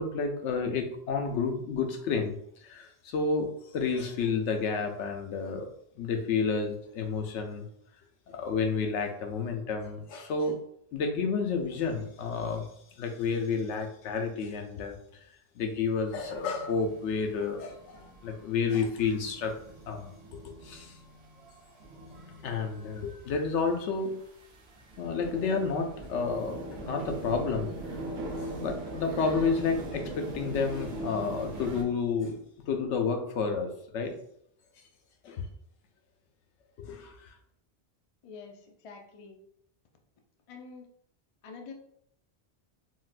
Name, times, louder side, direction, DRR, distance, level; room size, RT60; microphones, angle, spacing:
voice 1, 0.0-5.7 6.0-7.6 8.3-10.5 10.9-12.7 13.0-15.0 15.6-19.5 19.9-20.9 22.4-24.2 25.0-27.7 28.5-32.4 32.7-34.1 35.2-35.5 36.8-37.3, left 5 dB, 90° left, 4 dB, 0.9 m, -30 dB
sound 1, 16.1-31.8, right 1 dB, 70° right, 0.9 m, -41 dB
voice 2, 38.2-39.4 40.5-40.9 41.4-41.7, left 5 dB, 65° left, 3 dB, 0.3 m, -46 dB
3.9 x 2.1 x 2.5 m, 0.68 s
omnidirectional pair, 1.2 m